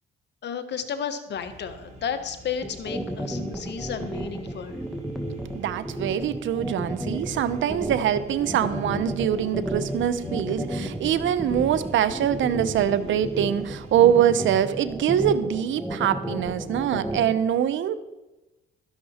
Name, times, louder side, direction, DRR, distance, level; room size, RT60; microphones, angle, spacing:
voice 1, 0.4-4.8 7.3-7.4 10.2-10.3, left 7 dB, 60° left, 8 dB, 1.3 m, -33 dB
sound 1, 1.3-14.1, right 1 dB, 35° right, 4.0 m, -47 dB
sound 2, 2.6-17.3, equal, ahead, 1.6 m, -32 dB
voice 2, 5.5-17.9, right 10 dB, 75° right, 13 dB, 0.8 m, -23 dB
12.5 x 11.0 x 4.3 m, 1.0 s
cardioid pair, 90°, 20 cm